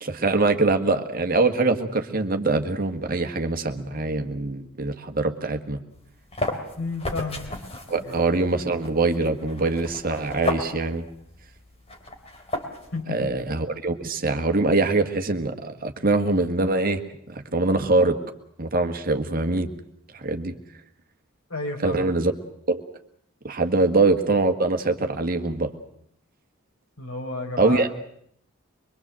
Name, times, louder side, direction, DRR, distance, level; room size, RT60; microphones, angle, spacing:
voice 1, 0.0-5.8 7.9-11.1 13.1-17.0 17.3-18.2 18.6-19.7 20.1-20.6 21.8-22.3 22.7-22.8 23.4-25.7 27.6-27.9, right 3 dB, 40° right, 6 dB, 1.7 m, -23 dB
sound 1, 5.9-13.0, left 2 dB, 30° left, 3.1 m, -34 dB
voice 2, 6.8-7.4 8.0-8.2 12.9-13.3 21.5-22.0 23.8-23.9 27.0-27.8, left 2 dB, 75° left, 2 dB, 5.4 m, -31 dB
23.5 x 23.0 x 7.6 m, 0.69 s
head